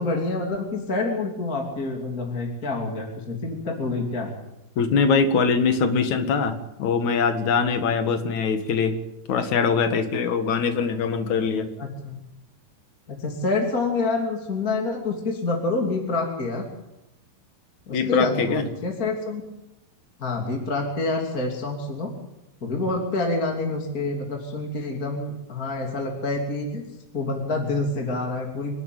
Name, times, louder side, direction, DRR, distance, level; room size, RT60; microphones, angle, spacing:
voice 1, 0.0-4.3 11.8-12.1 13.1-16.6 17.9-19.4 20.2-22.1 22.6-26.8 27.1-28.8, left 2 dB, 25° left, 1 dB, 2.8 m, -27 dB
voice 2, 4.8-9.0 9.3-11.7 17.9-18.7, left 5 dB, 55° left, 8 dB, 2.6 m, -22 dB
25.5 x 12.0 x 9.2 m, 0.90 s
omnidirectional pair, 4.7 m